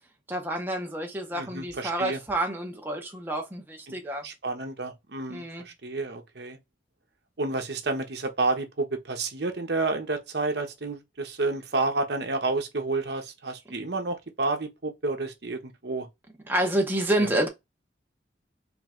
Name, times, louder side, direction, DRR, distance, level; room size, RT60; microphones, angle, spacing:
voice 1, 0.3-4.2 5.3-5.6 16.5-17.5, right 1 dB, 10° right, 0.7 m, -28 dB
voice 2, 1.3-2.2 3.9-4.0 4.2-6.6 7.4-16.1, right 3 dB, 65° right, 0.9 m, -30 dB
3.5 x 3.2 x 3.6 m
head